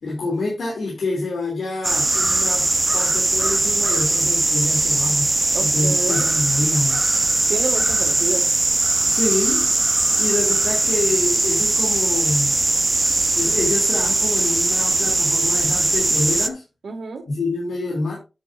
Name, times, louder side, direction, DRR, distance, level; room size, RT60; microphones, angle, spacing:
voice 1, 0.0-2.7 2.9-7.1 9.1-9.7 10.2-12.6 13.4-16.6 17.3-18.2, left 2 dB, 90° left, 2.9 m, -26 dB
sound 1, 1.8-16.5, right 2 dB, 25° right, 0.7 m, -20 dB
voice 2, 5.5-6.3 7.5-8.5 16.8-17.3, right 4 dB, 85° right, 1.9 m, -29 dB
9.1 x 8.6 x 2.6 m
wide cardioid pair, 95°, 0 cm